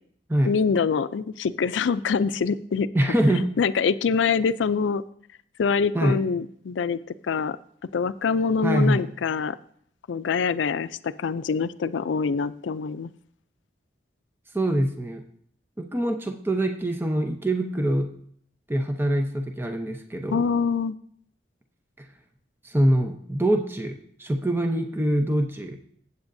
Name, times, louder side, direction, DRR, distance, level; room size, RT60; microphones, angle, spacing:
voice 1, 0.4-2.9 3.6-5.0 5.6-7.6 7.9-9.6 10.1-13.1 20.3-21.0, left 5 dB, 90° left, 15 dB, 0.4 m, -25 dB
voice 2, 2.9-3.5 5.9-6.2 8.6-9.0 14.5-15.2 15.8-18.1 18.7-20.4 22.6-25.8, right 1 dB, 10° right, 4 dB, 0.7 m, -24 dB
14.0 x 8.2 x 2.6 m, 0.64 s
head